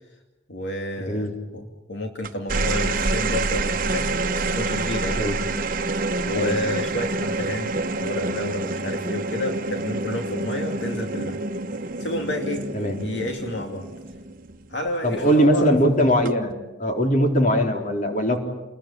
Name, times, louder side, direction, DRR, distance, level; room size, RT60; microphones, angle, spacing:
voice 1, 0.5-4.1 4.4-5.3 6.2-7.7 8.0-11.4 12.0-12.7 13.0-13.9 14.7-15.7, left 1 dB, 70° left, 2 dB, 2.6 m, -30 dB
voice 2, 1.1-1.4 5.2-5.4 6.3-6.6 12.7-13.0 15.0-16.5 16.8-18.4, equal, 45° left, 3 dB, 4.0 m, -20 dB
sound 1, 2.2-14.8 16.1-16.5, right 3 dB, 50° right, 1.1 m, -27 dB
29.5 x 21.0 x 8.8 m, 1.1 s
head